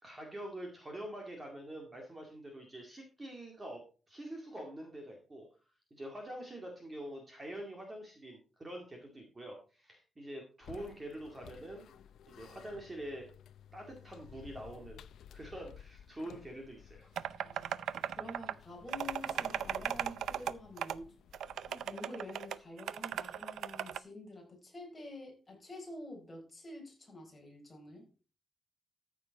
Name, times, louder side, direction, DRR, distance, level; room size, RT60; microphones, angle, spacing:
voice 1, 0.0-3.8 4.1-5.5 5.9-11.8 12.3-13.3 13.7-15.0 15.3-17.1, right 1 dB, 20° right, 1 dB, 2.1 m, -45 dB
sound 1, 10.6-22.0, left 9 dB, 85° left, 0.5 m, -55 dB
sound 2, 17.2-18.5 18.9-20.5 20.8-20.9 21.3-24.0, right 9 dB, 80° right, 0.5 m, -37 dB
voice 2, 17.4-17.8 18.2-28.1, left 1 dB, 10° left, 0 dB, 4.3 m, -48 dB
14.0 x 7.0 x 4.0 m, 0.36 s
wide cardioid pair, 175°, 0 cm